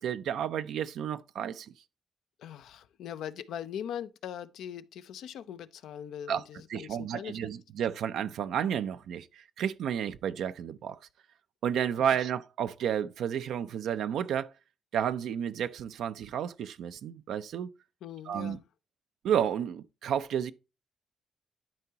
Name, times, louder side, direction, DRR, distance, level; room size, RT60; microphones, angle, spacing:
voice 1, 0.0-1.7 6.3-6.4 6.7-11.0 11.6-14.5 14.9-17.7 18.3-18.6 19.2-20.5, right 9 dB, 80° right, 0.4 m, -31 dB
voice 2, 2.4-7.4 12.0-12.2 18.0-18.6, left 9 dB, 85° left, 0.5 m, -41 dB
11.5 x 4.6 x 2.8 m
cardioid pair, 70°, 0 cm